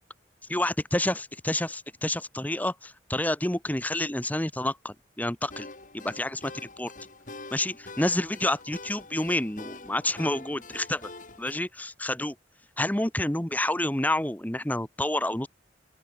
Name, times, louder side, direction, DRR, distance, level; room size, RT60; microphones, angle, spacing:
voice 1, 0.5-5.7 5.9-6.9 7.5-11.1 11.4-12.3 12.8-15.5, left 1 dB, 10° left, 1.0 m, -29 dB
sound 1, 5.5-11.5, left 3 dB, 45° left, 2.7 m, -45 dB
open air
head